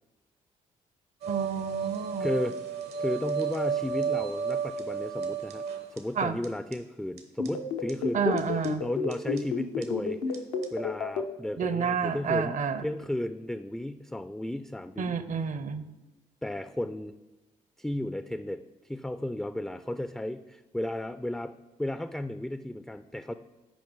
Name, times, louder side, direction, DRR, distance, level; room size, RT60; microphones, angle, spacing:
sound 1, 1.2-6.0 6.4-6.5 6.7-6.8 7.2-7.3 7.5-7.6 7.9-8.0 8.4-8.7 9.1-9.4 9.8-9.9 10.3-10.4 10.6-10.7, right 6 dB, 75° right, 1.0 m, -32 dB
voice 1, 1.3-2.3 6.2-6.4 8.1-8.8 11.6-12.9 15.0-15.8, right 6 dB, 45° right, 13 dB, 0.6 m, -29 dB
voice 2, 2.2-2.6 3.0-5.6 5.9-10.2 10.7-15.2 16.4-17.2 17.8-21.5 21.8-23.3, left 1 dB, 5° left, 11 dB, 0.3 m, -34 dB
sound 2, 7.4-11.2, left 6 dB, 85° left, 0.6 m, -30 dB
8.8 x 5.1 x 3.3 m, 1.1 s
hypercardioid pair, 45°, 17 cm